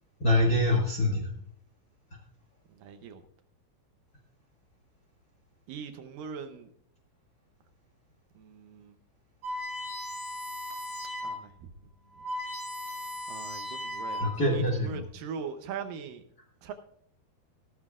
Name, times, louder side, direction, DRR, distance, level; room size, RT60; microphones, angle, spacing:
voice 1, 0.2-1.3 14.2-15.0, left 1 dB, 80° left, -2 dB, 0.8 m, -25 dB
voice 2, 2.7-3.2 5.7-6.7 8.4-9.0 11.2-11.7 13.0-16.2 16.6-16.7, right 6 dB, 75° right, 7 dB, 2.2 m, -41 dB
sound 1, 9.4-11.4 11.8-11.9 12.1-14.6, left 1 dB, 35° right, 4.9 m, -37 dB
16.0 x 13.0 x 2.4 m, 0.65 s
omnidirectional pair, 4.6 m